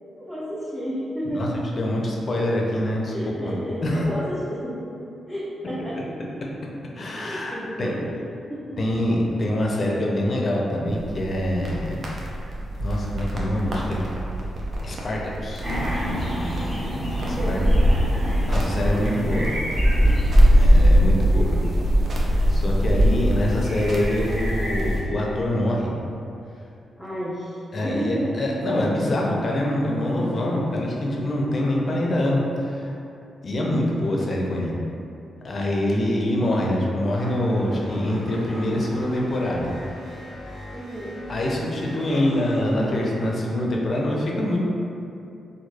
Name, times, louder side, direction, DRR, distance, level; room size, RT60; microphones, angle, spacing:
voice 1, 0.0-1.6 3.1-4.8 5.3-6.1 7.1-8.1 8.5-8.8 17.3-18.0 18.9-19.2 27.0-28.4 40.7-41.1 42.0-42.2, equal, 5° right, -9 dB, 0.6 m, -31 dB
voice 2, 1.8-3.5 3.8-4.0 7.0-7.9 8.8-12.0 12.8-14.0 14.8-15.6 17.2-17.6 18.5-19.5 20.6-21.5 22.5-25.9 27.7-33.0 33.4-34.7 35.4-39.7 41.3-44.6, left 1 dB, 50° left, -2 dB, 0.5 m, -25 dB
sound 1, 10.9-24.9, right 1 dB, 60° right, 0.5 m, -34 dB
sound 2, 15.6-25.0, equal, 25° right, 1.3 m, -20 dB
sound 3, 37.2-43.1, equal, 85° right, 1.0 m, -39 dB
3.1 x 2.2 x 2.3 m, 2.7 s
supercardioid pair, 55°, 0 cm